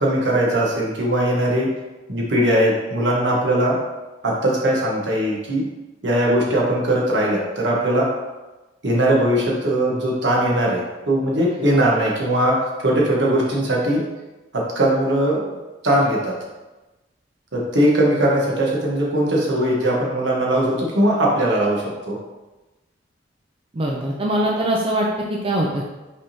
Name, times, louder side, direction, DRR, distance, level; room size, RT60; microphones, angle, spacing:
voice 1, 0.0-1.7 2.1-3.8 4.2-5.7 6.0-8.1 8.8-14.0 14.5-15.6 15.8-16.3 17.5-22.2, right 1 dB, 70° right, -3 dB, 1.1 m, -20 dB
voice 2, 23.7-25.8, right 1 dB, 30° right, -2 dB, 0.4 m, -22 dB
5.3 x 3.5 x 2.8 m, 1.1 s
head